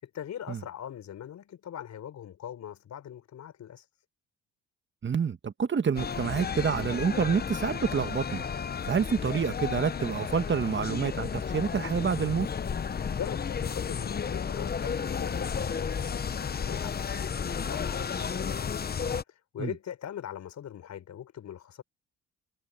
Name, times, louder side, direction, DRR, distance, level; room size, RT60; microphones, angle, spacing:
voice 1, 0.0-3.9 13.1-18.7 19.3-21.8, left 10 dB, 65° left, 5.6 m, -41 dB
voice 2, 5.0-8.4 8.8-12.5 19.6-19.7, right 6 dB, 40° right, 1.6 m, -28 dB
sound 1, 5.9-19.2, left 6 dB, 30° left, 0.8 m, -33 dB
cardioid pair, 90°, 30 cm